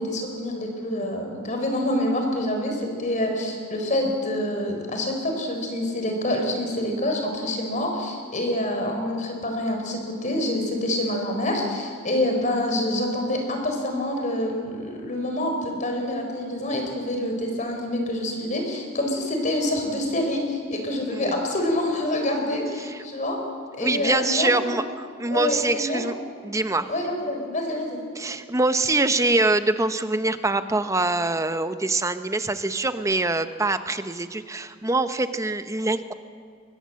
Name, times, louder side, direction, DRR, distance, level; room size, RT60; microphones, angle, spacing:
voice 1, 0.0-23.4 23.7-24.8 25.3-26.1 26.9-28.0, left 1 dB, 40° left, 3 dB, 4.4 m, -26 dB
voice 2, 23.8-26.1 26.4-26.9 28.1-36.1, right 2 dB, 15° right, 10 dB, 0.9 m, -24 dB
24.0 x 20.0 x 7.6 m, 2.2 s
head